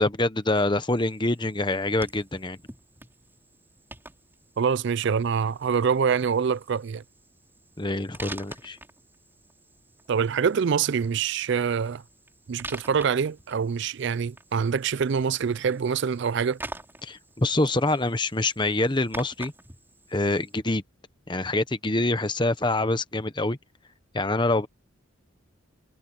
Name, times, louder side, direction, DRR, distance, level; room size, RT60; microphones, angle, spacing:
voice 1, 0.0-2.6 7.8-8.8 17.0-19.5 20.1-20.8 21.3-23.6 24.1-24.7, left 2 dB, 20° left, 1.0 m, -25 dB
sound 1, 0.9-20.5, right 2 dB, 10° right, 4.6 m, -47 dB
voice 2, 4.6-7.0 10.1-12.0 12.5-16.6, right 6 dB, 55° right, 0.4 m, -25 dB
head